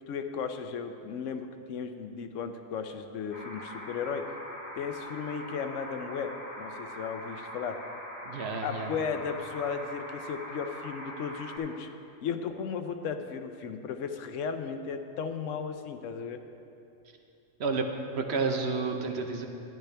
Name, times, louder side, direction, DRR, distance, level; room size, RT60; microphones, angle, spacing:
voice 1, 0.1-4.2 4.7-6.3 6.6-7.8 8.6-11.9 12.2-16.4, left 6 dB, 80° left, 7 dB, 1.0 m, -35 dB
sound 1, 3.3-11.6, equal, 45° left, 1.6 m, -42 dB
voice 2, 8.3-8.9 17.6-17.9 18.1-19.5, right 4 dB, 60° right, 4 dB, 1.0 m, -30 dB
12.5 x 10.0 x 3.3 m, 2.7 s
omnidirectional pair, 1.3 m